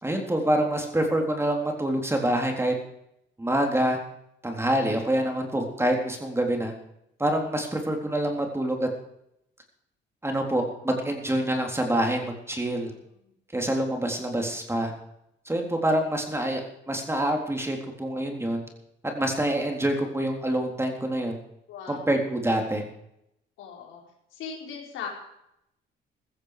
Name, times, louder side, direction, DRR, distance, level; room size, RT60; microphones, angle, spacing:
voice 1, 0.0-2.7 3.4-4.0 4.4-6.7 7.2-8.9 10.2-12.9 13.5-14.9 15.5-16.6 16.9-18.6 19.1-21.4 21.9-22.8, right 1 dB, 10° right, 2 dB, 3.7 m, -26 dB
voice 2, 12.9-13.3 21.7-22.1 23.6-24.0 24.3-25.1, left 7 dB, 90° left, 0 dB, 4.5 m, -39 dB
15.0 x 14.5 x 5.1 m, 0.80 s
cardioid pair, 90°, 20 cm